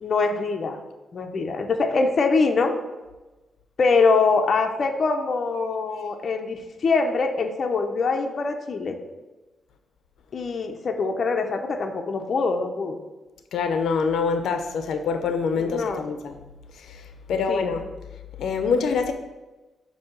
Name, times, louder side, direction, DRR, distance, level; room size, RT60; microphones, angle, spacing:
voice 1, 0.0-0.8 1.1-2.7 3.8-9.0 10.3-13.0 15.6-16.0 17.5-17.7, left 4 dB, 40° left, 4 dB, 0.6 m, -23 dB
voice 2, 13.5-16.3 16.7-17.9 18.4-19.1, left 5 dB, 90° left, 7 dB, 0.5 m, -25 dB
7.5 x 2.7 x 5.8 m, 1.1 s
wide cardioid pair, 165°, 0 cm